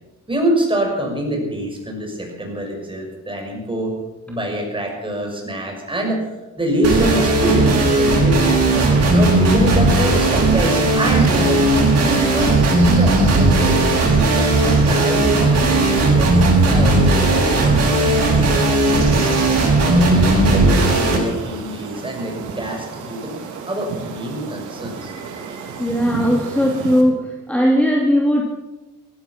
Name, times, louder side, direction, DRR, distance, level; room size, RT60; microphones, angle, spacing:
voice 1, 0.3-4.0 4.3-8.7 9.1-11.6 12.0-13.8 14.4-14.6 14.8-16.3 16.7-19.3 19.8-23.4 23.7-25.1, right 1 dB, 15° right, 1 dB, 6.1 m, -25 dB
sound 1, 6.8-21.2, right 2 dB, 55° right, 6.8 m, -16 dB
sound 2, 8.8-27.0, right 5 dB, 80° right, 3.1 m, -34 dB
voice 2, 25.8-28.4, equal, 5° left, -1 dB, 2.6 m, -18 dB
16.5 x 15.0 x 5.9 m, 1.1 s
cardioid pair, 90°, 30 cm